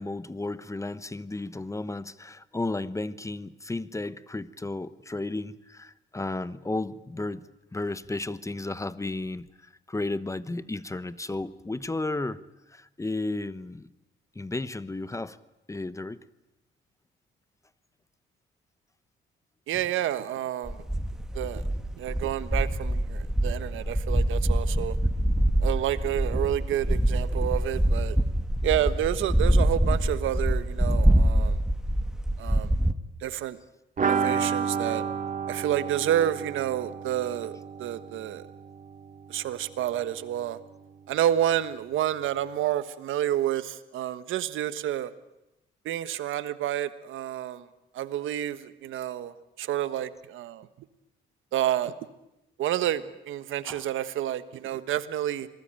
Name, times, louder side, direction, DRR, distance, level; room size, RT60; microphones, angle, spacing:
voice 1, 0.0-7.4 7.7-12.4 12.7-13.9 14.3-15.4 15.7-16.2 19.7-19.8 53.7-53.9, left 2 dB, 15° left, 15 dB, 1.1 m, -33 dB
voice 2, 19.7-20.7 21.3-21.6 22.0-24.9 25.6-28.2 28.6-31.5 32.4-32.7 33.2-33.6 34.0-35.0 35.5-38.4 39.3-40.6 41.1-45.1 45.8-47.6 47.9-49.3 49.6-50.6 51.5-51.9 52.6-55.5, right 11 dB, 80° right, 13 dB, 1.4 m, -29 dB
sound 1, 20.7-32.9, right 1 dB, 5° right, 1.5 m, -25 dB
sound 2, 34.0-39.6 39.8-39.9 40.2-40.3, right 6 dB, 40° right, 2.9 m, -31 dB
26.5 x 20.0 x 9.0 m, 0.92 s
cardioid pair, 90°, 20 cm